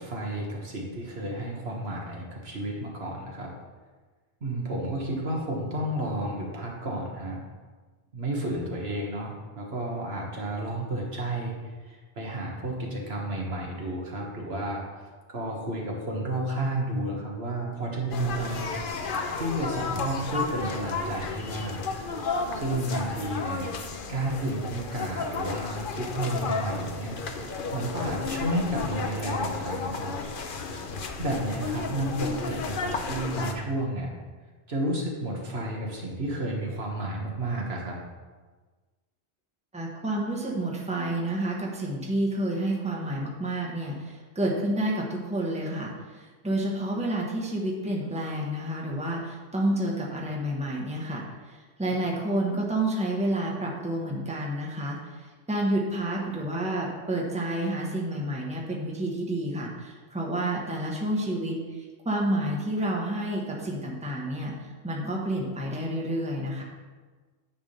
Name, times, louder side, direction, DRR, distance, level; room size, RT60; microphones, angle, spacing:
voice 1, 0.0-3.5 4.4-7.4 8.1-18.8 19.4-21.9 22.5-23.7 24.1-27.2 27.7-30.2 31.2-34.1 34.7-38.0, right 1 dB, 65° right, -2 dB, 1.7 m, -31 dB
sound 1, 18.1-33.5, left 4 dB, 55° left, 0.8 m, -33 dB
voice 2, 39.7-66.6, right 1 dB, 5° right, -3 dB, 1.2 m, -29 dB
9.6 x 3.7 x 6.7 m, 1.4 s
omnidirectional pair, 1.1 m